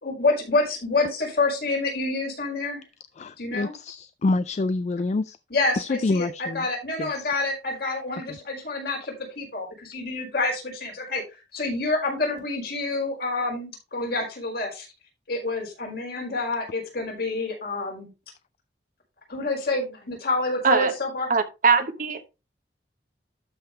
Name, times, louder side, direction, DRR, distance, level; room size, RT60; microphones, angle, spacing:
voice 1, 0.0-2.8 3.4-3.7 5.5-14.9 15.3-18.1 19.3-21.3, left 2 dB, 60° left, 5.0 m, -28 dB
voice 2, 3.2-5.4 5.8-6.6 7.0-7.3, left 3 dB, 40° left, 0.3 m, -27 dB
voice 3, 21.3-22.3, right 5 dB, 50° right, 1.0 m, -21 dB
12.5 x 5.8 x 3.2 m
head